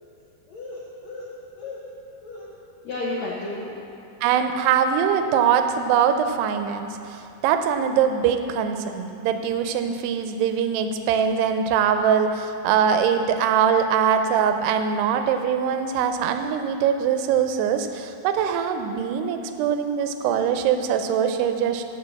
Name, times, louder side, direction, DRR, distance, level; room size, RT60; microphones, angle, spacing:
voice 1, 0.5-1.3 1.5-1.9 2.2-2.6 2.8-3.7, left 2 dB, 85° left, -5 dB, 1.5 m, -33 dB
voice 2, 4.2-21.8, right 7 dB, 85° right, 7 dB, 2.7 m, -22 dB
14.0 x 4.8 x 7.0 m, 2.6 s
omnidirectional pair, 4.7 m